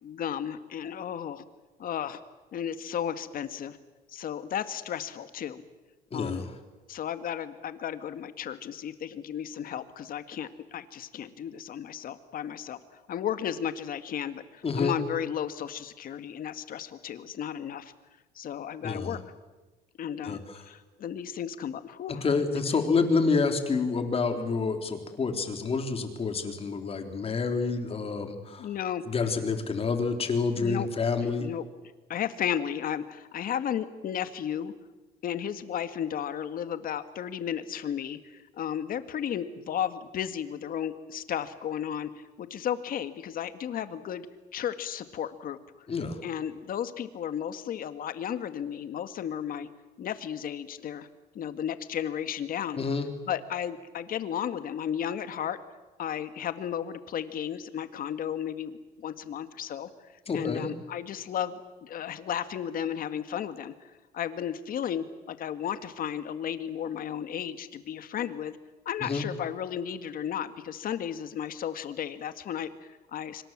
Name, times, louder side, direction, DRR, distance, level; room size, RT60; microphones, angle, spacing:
voice 1, 0.0-1.4 1.8-2.2 2.5-3.8 4.1-5.6 6.1-6.4 6.9-17.9 18.4-19.2 20.0-22.2 28.6-29.0 30.6-30.9 31.4-31.7 32.1-34.7 35.2-44.3 44.5-45.6 46.2-49.7 50.0-51.1 51.4-52.8 53.3-55.6 56.0-59.9 60.3-68.6 68.9-73.4, left 9 dB, 55° left, 11 dB, 1.9 m, -34 dB
voice 2, 6.1-6.5 14.6-14.9 18.8-19.2 20.2-20.4 22.2-28.7 29.1-31.5 45.9-46.2 52.8-53.1 60.3-60.7 69.0-69.2, left 4 dB, 35° left, 6 dB, 3.7 m, -28 dB
26.5 x 24.5 x 7.5 m, 1.2 s
cardioid pair, 110°, 17 cm